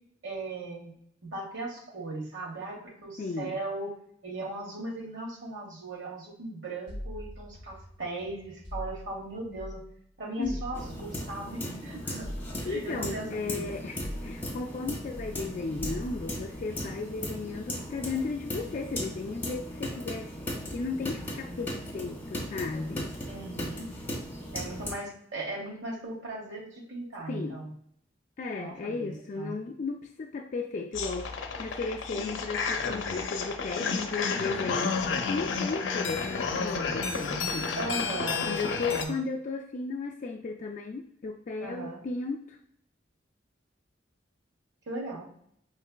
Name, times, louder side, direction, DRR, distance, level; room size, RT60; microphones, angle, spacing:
voice 1, 0.2-1.0 1.2-3.9 4.2-9.8 10.2-12.3 12.6-13.8 23.3-23.9 24.5-27.7 28.6-29.6 37.8-39.2 41.6-42.0 44.9-45.3, right 2 dB, 90° right, -2 dB, 1.1 m, -38 dB
voice 2, 3.2-3.6 10.4-10.6 12.7-20.3 20.7-23.1 27.3-27.6 28.4-34.9 35.3-37.7 38.4-42.6, left 4 dB, 40° left, 1 dB, 0.3 m, -35 dB
sound 1, 6.9-10.0 10.4-14.8 15.1-17.5, equal, 35° right, 1.2 m, -43 dB
sound 2, 10.7-24.9, equal, 10° left, 1.2 m, -37 dB
sound 3, 30.9-39.0, left 4 dB, 90° left, 0.6 m, -31 dB
5.5 x 3.1 x 2.2 m, 0.68 s
head